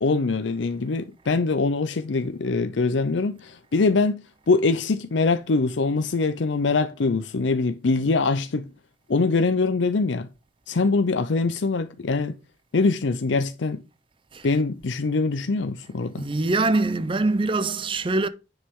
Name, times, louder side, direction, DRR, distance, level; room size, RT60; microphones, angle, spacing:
voice 1, 0.0-8.7 9.1-10.3 10.7-12.3 12.7-13.8 14.4-16.3, left 3 dB, 75° left, 0.6 m, -23 dB
voice 2, 16.1-18.3, right 2 dB, 25° right, 0.5 m, -24 dB
9.7 x 5.6 x 3.7 m
head